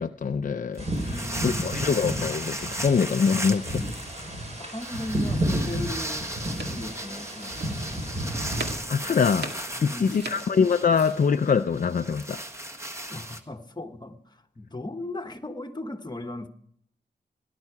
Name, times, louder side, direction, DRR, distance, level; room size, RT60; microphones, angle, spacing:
voice 1, 0.0-3.8 8.9-9.5 9.8-12.4, left 6 dB, 50° left, 8 dB, 0.5 m, -24 dB
sound 1, 0.7-13.4, right 1 dB, 15° right, 1.3 m, -37 dB
sound 2, 0.8-8.7, right 1 dB, 40° right, 4.8 m, -32 dB
voice 2, 1.0-1.8 4.6-6.3 6.7-7.8 9.7-10.4 13.1-16.5, left 2 dB, 25° left, 7 dB, 1.2 m, -37 dB
sound 3, 6.4-11.1, right 2 dB, 70° right, 2.1 m, -40 dB
17.5 x 11.0 x 4.8 m, 0.69 s
wide cardioid pair, 85°, 18 cm